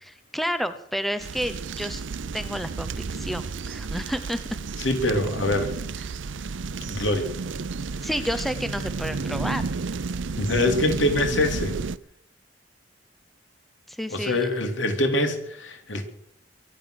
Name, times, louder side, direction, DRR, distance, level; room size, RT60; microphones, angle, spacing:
voice 1, 0.0-2.0 2.3-4.4 8.0-9.7 13.9-14.5, equal, ahead, 11 dB, 0.9 m, -30 dB
sound 1, 1.2-12.0, right 4 dB, 80° right, 0.6 m, -32 dB
voice 2, 4.8-5.8 6.9-7.3 10.4-11.7 14.1-16.0, left 1 dB, 85° left, 6 dB, 3.1 m, -24 dB
23.5 x 9.2 x 6.5 m, 0.73 s
head